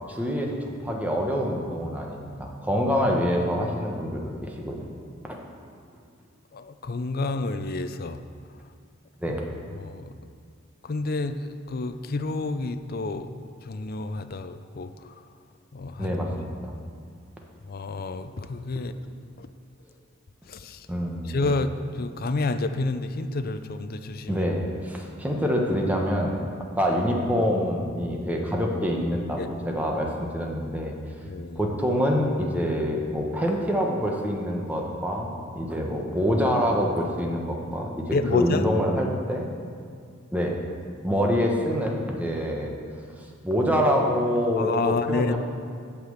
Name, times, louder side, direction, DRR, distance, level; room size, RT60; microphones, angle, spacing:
voice 1, 0.1-0.6 0.8-4.8 5.2-5.4 9.2-9.5 16.0-16.7 20.9-21.5 24.3-26.4 26.8-30.9 31.5-37.9 38.3-39.5 40.3-40.5 41.0-42.7 43.4-45.4, equal, 10° right, 0 dB, 1.1 m, -26 dB
voice 2, 6.5-8.2 9.8-10.0 10.9-11.4 11.7-13.3 13.7-14.9 15.7-16.1 17.7-18.9 19.4-19.5 20.6-20.8 21.3-21.7 22.0-24.4 29.4-29.5 31.3-31.6 38.1-38.6 44.6-45.4, left 3 dB, 50° left, 9 dB, 0.5 m, -29 dB
8.6 x 5.9 x 7.9 m, 2.2 s
head